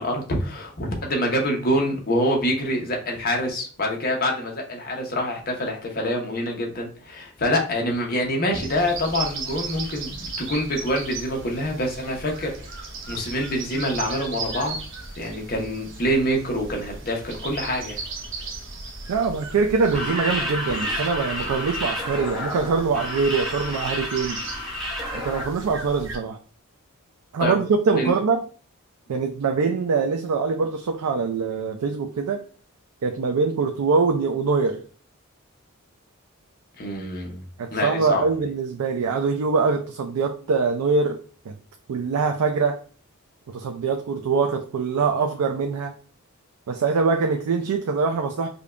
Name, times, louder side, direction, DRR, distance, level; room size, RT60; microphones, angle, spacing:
voice 1, 0.0-14.8 15.2-18.0 27.4-27.6 28.0-28.1 36.8-37.4 37.7-38.2, equal, 40° left, 0 dB, 0.8 m, -26 dB
sound 1, 8.5-26.2, right 3 dB, 55° right, 0.7 m, -36 dB
voice 2, 19.1-24.4 25.1-26.4 27.3-28.4 29.1-32.4 33.0-34.8 37.6-41.2 41.5-41.6 41.9-42.8 43.5-45.9 46.7-48.5, right 4 dB, 90° right, 4 dB, 0.4 m, -23 dB
sound 2, 19.8-25.4, left 1 dB, ahead, 0.9 m, -30 dB
5.1 x 2.3 x 2.4 m, 0.42 s
head